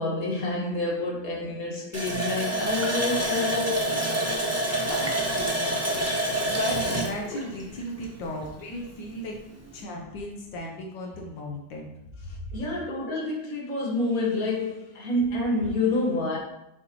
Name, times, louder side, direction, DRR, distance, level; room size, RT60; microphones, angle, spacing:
voice 1, 0.0-4.1 12.3-16.4, left 2 dB, 50° left, 2.0 m, -28 dB
Water tap faucet, 1.9-8.4 8.8-8.9 9.3-9.5, right 1 dB, 15° right, 0.6 m, -27 dB
voice 2, 4.7-9.4 9.7-11.9 12.5-12.6, left 1 dB, 85° left, 1.6 m, -36 dB
7.6 x 5.1 x 3.1 m
omnidirectional pair, 1.9 m